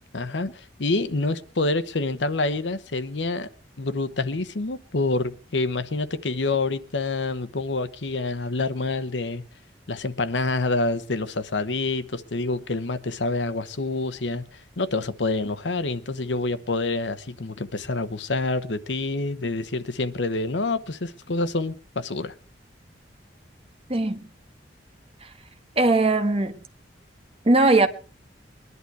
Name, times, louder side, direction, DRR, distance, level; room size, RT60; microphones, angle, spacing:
voice 1, 0.1-3.5 3.8-9.4 9.9-22.3, left 3 dB, 80° left, 1.0 m, -27 dB
voice 2, 23.9-24.3 25.2-25.3 25.8-26.6 27.4-27.9, right 2 dB, 35° right, 1.3 m, -19 dB
21.5 x 11.0 x 4.7 m
head